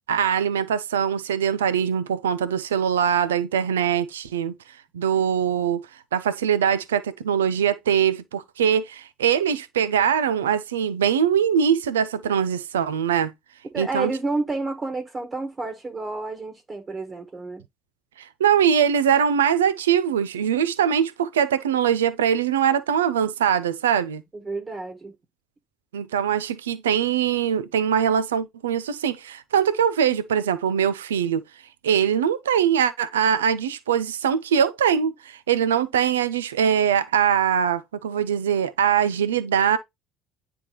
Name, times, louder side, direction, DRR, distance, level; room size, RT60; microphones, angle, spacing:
voice 1, 0.1-4.5 4.9-5.8 6.1-13.3 13.8-14.1 18.2-24.2 25.9-31.4 31.8-39.8, right 8 dB, 90° right, 0.4 m, -22 dB
voice 2, 13.7-17.6 24.4-25.1, right 3 dB, 30° right, 1.4 m, -30 dB
9.5 x 3.4 x 2.9 m
hypercardioid pair, 65°, 0 cm